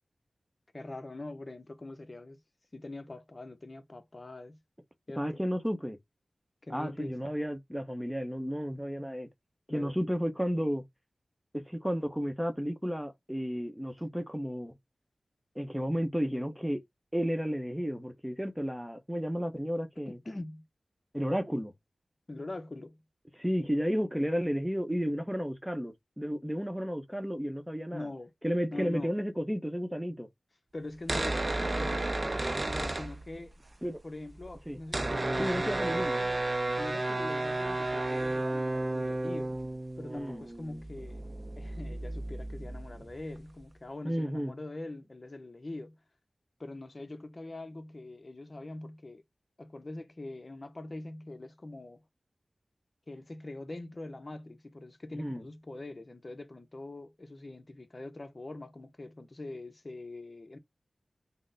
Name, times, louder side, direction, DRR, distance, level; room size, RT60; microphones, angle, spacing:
voice 1, 0.7-2.4 2.7-4.6 5.1-5.4 6.6-7.2 9.7-10.0 20.1-20.6 22.3-23.0 27.9-28.3 28.7-29.1 30.7-32.2 32.6-33.5 34.0-36.4 36.8-39.6 40.0-41.2 41.6-46.0 46.6-49.2 49.6-52.0 53.1-60.6, left 2 dB, 45° left, 0.7 m, -43 dB
voice 2, 5.2-6.0 6.7-9.3 9.7-10.8 11.5-14.7 15.6-16.8 17.1-20.2 21.1-21.7 23.3-28.1 28.4-30.3 33.8-34.0 34.7-34.8 35.4-36.2 40.0-40.4 44.0-44.6 55.1-55.4, equal, 5° right, 0.8 m, -32 dB
sound 1, 30.9-33.7 33.9-34.0 34.2-43.6, right 2 dB, 45° right, 0.5 m, -33 dB
3.8 x 2.1 x 3.8 m
cardioid pair, 40°, 0 cm